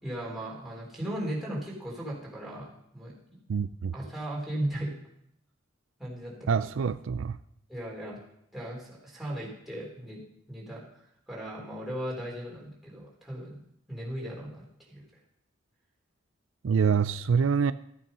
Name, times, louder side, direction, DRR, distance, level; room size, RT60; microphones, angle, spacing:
voice 1, 0.0-3.1 3.9-5.0 6.0-6.7 7.7-8.2 8.5-10.2 10.5-13.6 13.9-15.0, right 1 dB, ahead, -5 dB, 4.0 m, -37 dB
voice 2, 3.5-3.9 6.5-7.4 16.6-17.7, right 6 dB, 75° right, 14 dB, 0.4 m, -25 dB
14.0 x 8.8 x 5.4 m, 0.75 s
head